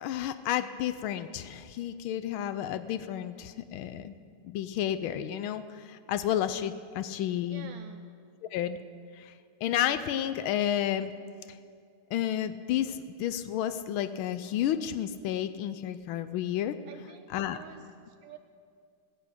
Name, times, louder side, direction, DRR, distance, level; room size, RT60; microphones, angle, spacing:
voice 1, 0.0-4.1 4.4-7.7 8.5-8.8 9.1-9.3 9.6-11.1 12.1-16.8 17.3-17.6, left 11 dB, 75° left, 12 dB, 1.3 m, -31 dB
voice 2, 7.5-8.0 16.9-18.4, right 9 dB, 75° right, 8 dB, 1.1 m, -49 dB
14.5 x 8.3 x 7.8 m, 2.2 s
omnidirectional pair, 2.4 m